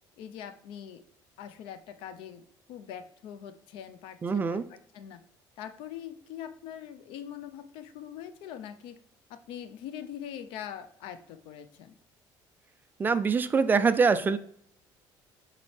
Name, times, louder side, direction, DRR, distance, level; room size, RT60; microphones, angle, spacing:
voice 1, 0.2-1.0 1.4-2.4 2.7-5.2 5.6-9.0 9.3-11.9, left 9 dB, 85° left, 11 dB, 0.6 m, -43 dB
voice 2, 4.2-4.6 13.0-14.4, right 5 dB, 20° right, 12 dB, 0.3 m, -24 dB
7.3 x 4.2 x 3.2 m, 0.70 s
cardioid pair, 145°, 9 cm